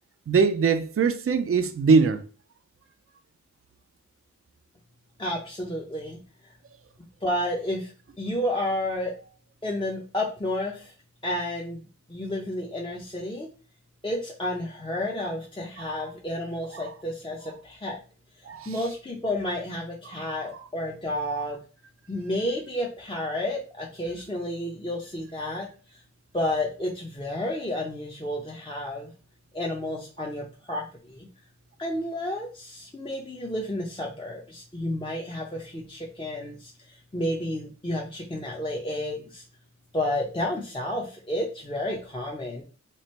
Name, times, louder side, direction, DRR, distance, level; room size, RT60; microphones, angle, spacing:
voice 1, 0.3-2.2 15.8-15.9 16.7-16.9 18.5-18.8 20.1-20.4, right 5 dB, 50° right, 0.5 m, -22 dB
voice 2, 5.2-6.2 7.2-7.9 8.2-9.1 9.6-10.9 11.2-13.5 14.0-18.0 18.7-21.6 22.1-25.7 25.9-26.0 26.3-29.1 29.5-31.3 31.8-36.7 37.1-39.4 39.9-42.6, left 1 dB, 15° left, 0.7 m, -31 dB
3.1 x 2.5 x 4.3 m
wide cardioid pair, 55°, 30 cm